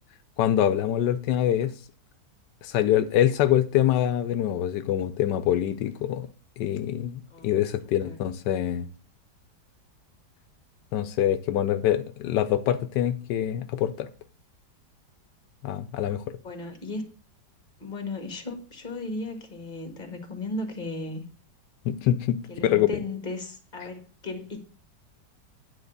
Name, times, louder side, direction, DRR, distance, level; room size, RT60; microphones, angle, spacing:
voice 1, 0.4-1.7 2.6-6.3 6.6-8.9 10.9-14.1 15.6-16.2 21.9-22.9, left 11 dB, 85° left, 1.2 m, -25 dB
voice 2, 16.4-17.0 17.8-21.2 22.5-24.6, left 2 dB, 30° left, 1.8 m, -35 dB
9.5 x 4.0 x 6.6 m
omnidirectional pair, 1.8 m